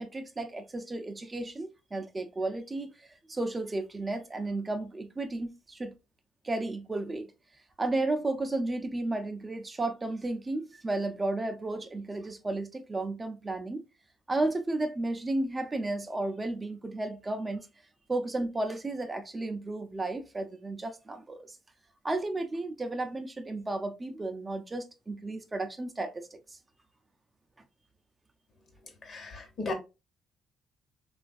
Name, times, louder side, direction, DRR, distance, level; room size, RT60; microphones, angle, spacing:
voice 1, 0.0-5.9 6.4-7.3 7.8-13.8 14.3-17.7 18.1-21.6 22.0-26.6, right 2 dB, 25° right, 0.4 m, -33 dB
voice 2, 29.0-29.7, left 2 dB, 55° left, 1.0 m, -35 dB
3.3 x 2.4 x 2.3 m
cardioid pair, 90°, 0 cm